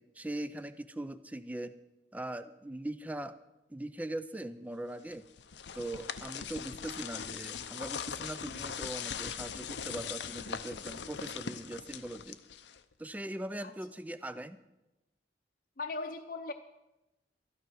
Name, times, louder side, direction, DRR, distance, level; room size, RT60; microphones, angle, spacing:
voice 1, 0.0-1.7 2.1-3.4 3.7-5.2 5.7-12.4 13.0-14.6, right 1 dB, 10° right, 11 dB, 0.4 m, -40 dB
sound 1, 5.1-12.9, left 7 dB, 90° left, 0.7 m, -40 dB
voice 2, 15.8-16.5, left 3 dB, 50° left, 2 dB, 0.7 m, -38 dB
13.0 x 12.0 x 6.3 m, 0.99 s
head